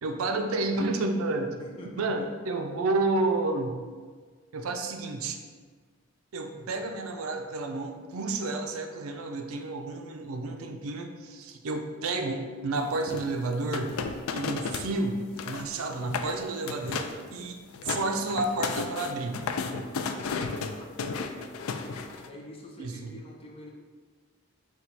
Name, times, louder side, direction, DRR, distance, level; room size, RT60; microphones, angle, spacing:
voice 1, 0.0-1.5 2.0-3.8 4.5-5.4 6.3-14.0 14.3-17.6 17.8-19.4 22.8-23.1, right 2 dB, 85° right, 5 dB, 0.4 m, -30 dB
voice 2, 1.6-2.2 6.5-6.8 20.5-23.7, left 1 dB, 25° left, -1 dB, 0.5 m, -47 dB
sound 1, 13.1-14.9 15.2-15.7 16.0-16.3 16.7-17.2 17.6-22.3, left 5 dB, 85° left, 0.3 m, -33 dB
4.4 x 2.3 x 4.0 m, 1.5 s
head